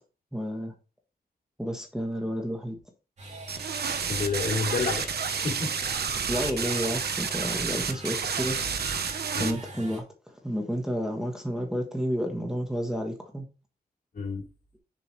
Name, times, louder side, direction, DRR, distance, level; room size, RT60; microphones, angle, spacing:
voice 1, 0.3-0.7 1.6-2.8 6.3-8.6 9.4-13.5, equal, 5° right, 1.4 m, -31 dB
sound 1, 3.2-10.0, right 1 dB, 45° right, 2.8 m, -43 dB
sound 2, 3.5-9.5, right 6 dB, 80° right, 1.0 m, -30 dB
voice 2, 4.1-5.7 9.3-9.6 14.1-14.4, left 4 dB, 60° left, 3.4 m, -30 dB
6.9 x 6.9 x 3.3 m
wide cardioid pair, 160°, 17 cm